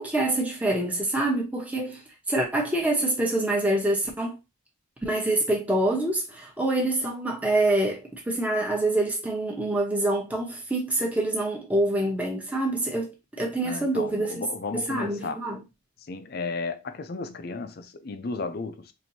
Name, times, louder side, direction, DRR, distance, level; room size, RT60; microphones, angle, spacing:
voice 1, 0.0-2.0 2.3-4.4 5.0-14.5 14.7-15.6, right 1 dB, 5° right, 0.9 m, -26 dB
voice 2, 13.6-15.4 16.1-18.9, left 3 dB, 50° left, 0.5 m, -34 dB
4.4 x 2.7 x 2.7 m
head